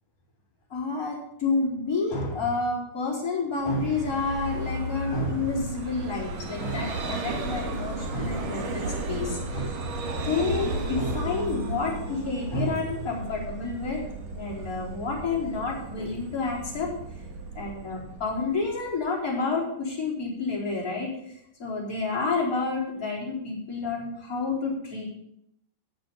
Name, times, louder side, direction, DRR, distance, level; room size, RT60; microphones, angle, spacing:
voice 1, 0.7-9.8 10.2-14.0 14.3-16.9 17.5-21.1 21.6-25.1, left 3 dB, 25° left, -5 dB, 4.3 m, -29 dB
Vehicle, 3.6-19.0, right 2 dB, 55° right, 2.5 m, -34 dB
17.5 x 6.2 x 5.5 m, 0.76 s
omnidirectional pair, 4.0 m